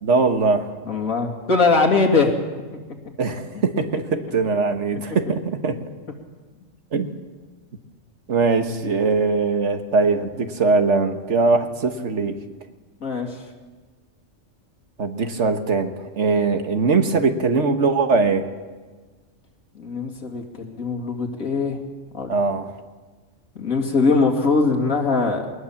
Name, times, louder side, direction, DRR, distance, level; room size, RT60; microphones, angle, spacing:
voice 1, 0.0-0.7 3.2-5.8 6.9-7.1 8.3-12.4 15.0-18.5 22.3-22.7, right 4 dB, 60° right, 7 dB, 1.7 m, -21 dB
voice 2, 0.8-2.3 13.0-13.4 19.7-21.8 22.1-22.4 23.5-25.5, left 4 dB, 85° left, 2 dB, 2.8 m, -21 dB
21.0 x 19.5 x 7.2 m, 1.4 s
omnidirectional pair, 1.4 m